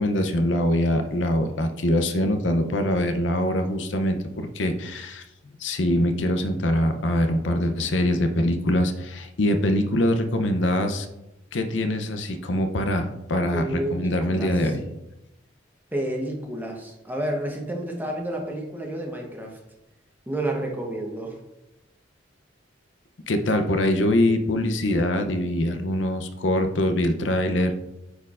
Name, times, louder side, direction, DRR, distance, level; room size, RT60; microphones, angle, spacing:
voice 1, 0.0-5.2 5.6-11.1 11.5-14.8 23.3-27.7, left 1 dB, 80° left, 7 dB, 0.6 m, -23 dB
voice 2, 13.5-14.5 15.9-19.6 20.3-21.4, right 1 dB, 10° right, 0 dB, 0.9 m, -30 dB
9.3 x 4.4 x 2.5 m, 0.90 s
head